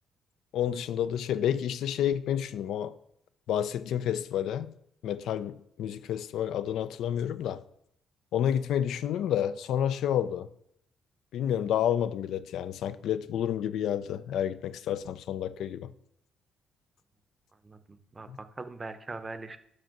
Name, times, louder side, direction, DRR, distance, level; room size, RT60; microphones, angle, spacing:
voice 1, 0.5-2.9 3.5-4.7 5.0-7.6 8.3-10.5 11.3-15.9 18.3-18.4, left 10 dB, 80° left, 0.3 m, -30 dB
voice 2, 17.6-19.6, right 3 dB, 25° right, 0.6 m, -41 dB
5.5 x 5.0 x 5.8 m
cardioid pair, 90°, 0 cm